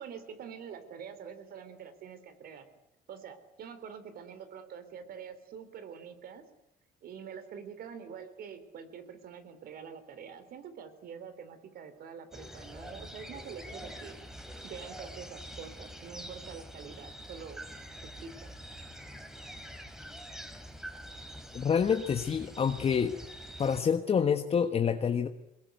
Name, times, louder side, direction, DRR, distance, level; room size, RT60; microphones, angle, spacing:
voice 1, 0.0-2.7 3.1-6.4 7.0-14.2 14.6-17.6 18.0-18.5, right 7 dB, 65° right, 11 dB, 3.9 m, -46 dB
sound 1, 12.3-23.8, equal, 5° right, 3.0 m, -45 dB
voice 2, 21.5-23.2 23.6-25.3, left 7 dB, 35° left, 7 dB, 1.4 m, -27 dB
23.0 x 21.5 x 9.4 m, 0.81 s
cardioid pair, 110°, 17 cm